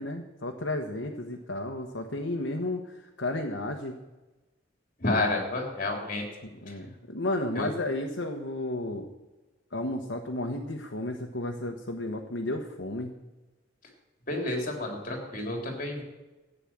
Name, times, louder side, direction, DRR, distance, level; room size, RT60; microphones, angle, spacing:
voice 1, 0.0-4.0 6.6-9.1 9.7-13.1, left 1 dB, 80° left, 3 dB, 1.3 m, -33 dB
voice 2, 5.0-6.2 6.7-6.8 7.6-7.7 14.3-16.0, left 2 dB, 45° left, 2 dB, 3.6 m, -30 dB
14.0 x 9.3 x 7.4 m, 1.1 s
head